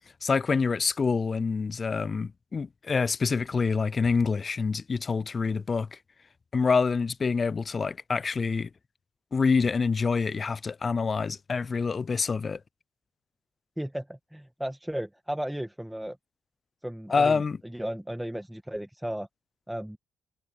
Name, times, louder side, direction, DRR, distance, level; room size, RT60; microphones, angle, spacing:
voice 1, 0.2-5.9 6.5-8.7 9.3-12.6 17.1-17.6, left 5 dB, 40° left, 0.4 m, -26 dB
voice 2, 13.8-16.2 16.8-19.3 19.7-20.0, right 1 dB, 5° right, 1.8 m, -35 dB
supercardioid pair, 65°, 0 cm